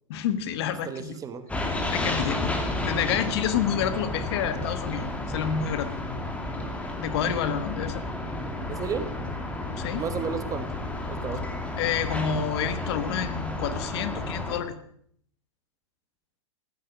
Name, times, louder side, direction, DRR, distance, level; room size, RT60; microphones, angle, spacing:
voice 1, 0.1-1.2 1.9-5.9 7.0-8.0 9.8-10.0 11.8-14.7, left 8 dB, 50° left, 11 dB, 1.6 m, -29 dB
voice 2, 0.9-1.5 8.7-9.2 9.9-10.7 11.0-11.7, right 6 dB, 20° right, 11 dB, 1.2 m, -33 dB
sound 1, 1.5-14.6, left 2 dB, 10° left, 2.4 m, -32 dB
15.5 x 12.0 x 6.3 m, 0.67 s
hypercardioid pair, 110°, 17 cm